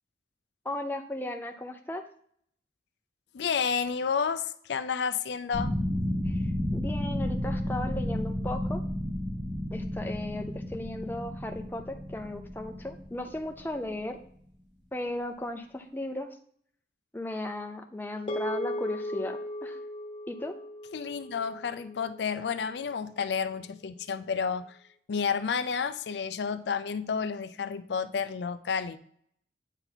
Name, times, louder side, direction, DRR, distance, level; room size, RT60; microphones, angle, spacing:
voice 1, 0.6-2.0 6.3-8.8 9.7-14.2 14.9-16.3 17.1-19.8 20.3-20.6, left 1 dB, 10° left, 4 dB, 0.6 m, -36 dB
voice 2, 3.3-5.7 20.9-24.8 25.1-29.0, left 6 dB, 75° left, 12 dB, 0.4 m, -31 dB
sound 1, 5.5-13.9, left 1 dB, 85° right, 2.0 m, -32 dB
sound 2, 18.3-22.8, left 1 dB, 30° left, 1.1 m, -37 dB
8.9 x 4.0 x 4.5 m, 0.64 s
head